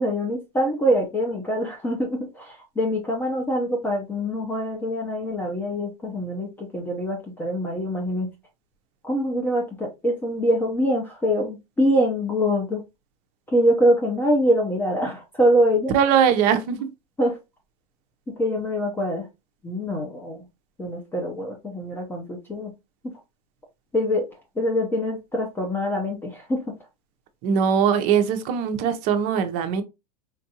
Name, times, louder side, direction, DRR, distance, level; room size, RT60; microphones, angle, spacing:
voice 1, 0.0-8.3 9.0-12.8 13.5-15.9 17.2-17.4 18.3-19.3 19.6-20.4 20.8-22.7 23.9-24.2 24.6-26.7, equal, 10° left, 0.7 m, -24 dB
voice 2, 15.9-16.9 27.4-29.8, right 7 dB, 40° right, 0.7 m, -21 dB
4.4 x 2.5 x 2.8 m
supercardioid pair, 140°, 20 cm